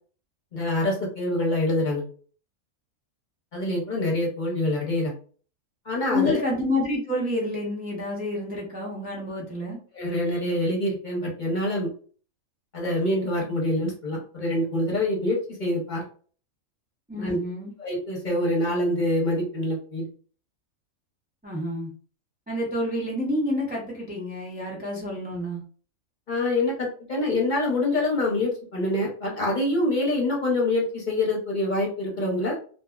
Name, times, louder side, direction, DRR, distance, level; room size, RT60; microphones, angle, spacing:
voice 1, 0.5-2.1 3.5-5.1 5.9-6.4 9.9-11.9 12.7-16.0 17.2-17.4 17.8-20.1 26.3-32.5, left 1 dB, 40° left, -2 dB, 0.8 m, -25 dB
voice 2, 6.1-9.8 17.1-17.7 21.4-21.9 22.5-25.6, left 1 dB, 15° right, -4 dB, 0.3 m, -28 dB
2.7 x 2.6 x 2.3 m, 0.42 s
omnidirectional pair, 1.5 m